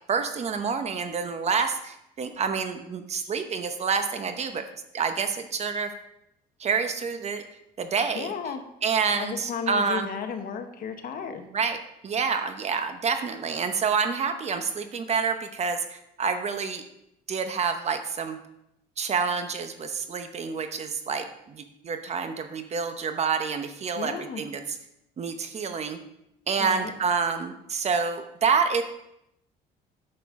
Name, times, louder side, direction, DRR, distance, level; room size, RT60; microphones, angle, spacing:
voice 1, 0.1-4.6 4.9-5.9 6.6-7.4 7.8-8.3 8.8-10.1 11.5-16.8 17.3-18.4 19.0-24.8 25.2-26.0 26.5-28.8, right 5 dB, 40° right, 8 dB, 0.9 m, -28 dB
voice 2, 8.1-8.6 9.2-11.4 24.0-24.4 26.6-26.9, left 7 dB, 55° left, 7 dB, 1.1 m, -34 dB
9.4 x 6.6 x 3.7 m, 0.80 s
cardioid pair, 110°, 17 cm